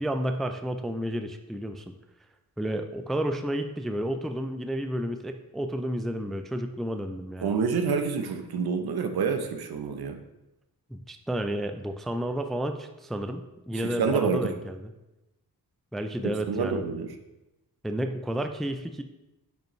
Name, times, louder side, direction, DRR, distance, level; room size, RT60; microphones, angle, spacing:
voice 1, 0.0-1.9 2.6-7.5 10.9-14.9 15.9-16.8 17.8-19.0, right 1 dB, ahead, 7 dB, 0.4 m, -31 dB
voice 2, 7.4-10.2 13.7-14.6 16.5-17.2, right 5 dB, 75° right, 6 dB, 0.8 m, -27 dB
9.0 x 5.2 x 3.1 m, 0.99 s
wide cardioid pair, 110°, 38 cm